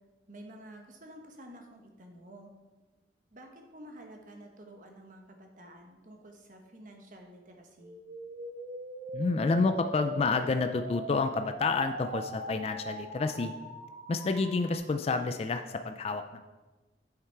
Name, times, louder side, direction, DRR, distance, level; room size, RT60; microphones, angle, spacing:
voice 1, 0.3-2.5 3.3-8.0, right 1 dB, 45° right, 3 dB, 1.1 m, -50 dB
sound 1, 7.8-14.8, right 1 dB, 70° right, 1.5 m, -41 dB
voice 2, 9.1-13.5 14.1-16.4, left 3 dB, 35° left, 7 dB, 0.3 m, -29 dB
8.5 x 5.8 x 4.5 m, 1.2 s
head